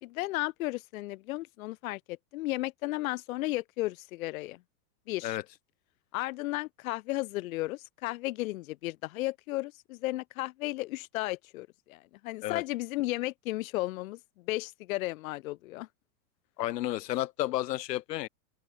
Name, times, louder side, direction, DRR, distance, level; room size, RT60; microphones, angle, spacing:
voice 1, 0.0-4.6 5.1-5.4 6.1-14.2 14.5-15.9, left 18 dB, 55° left, 2.0 m, -34 dB
voice 2, 16.6-18.3, left 14 dB, 85° left, 1.7 m, -32 dB
open air
supercardioid pair, 165°, 48 cm